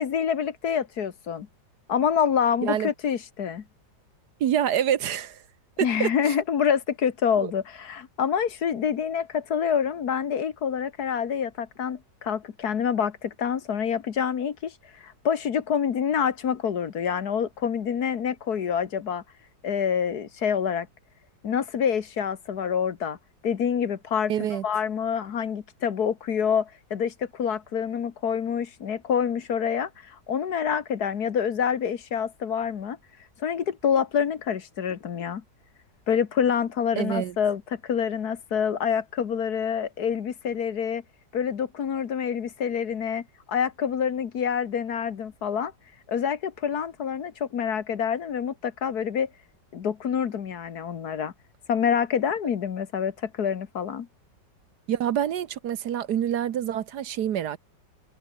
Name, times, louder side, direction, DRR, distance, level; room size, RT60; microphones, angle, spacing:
voice 1, 0.0-1.5 1.9-3.6 5.8-19.2 19.6-20.9 21.4-23.2 23.4-24.3 24.6-33.0 33.4-35.4 36.1-41.0 41.3-45.7 46.1-49.3 49.7-51.3 51.7-54.1, left 7 dB, 60° left, 1.8 m, -27 dB
voice 2, 4.4-5.4 5.8-6.3 24.3-24.6 37.0-37.3 54.9-57.6, right 10 dB, 65° right, 1.5 m, -26 dB
omnidirectional pair, 1.9 m